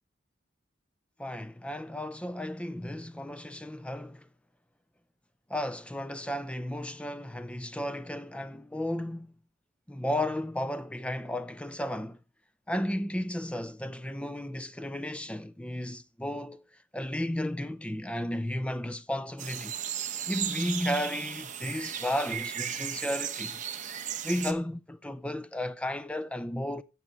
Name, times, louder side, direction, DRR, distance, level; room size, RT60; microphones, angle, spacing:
voice 1, 1.2-4.2 5.5-9.3 9.9-12.2 12.7-16.6 16.9-19.7 20.3-23.6 24.2-26.8, left 1 dB, 5° left, 0.5 m, -33 dB
sound 1, 19.4-24.5, right 9 dB, 40° right, 1.1 m, -35 dB
8.7 x 7.6 x 6.4 m
head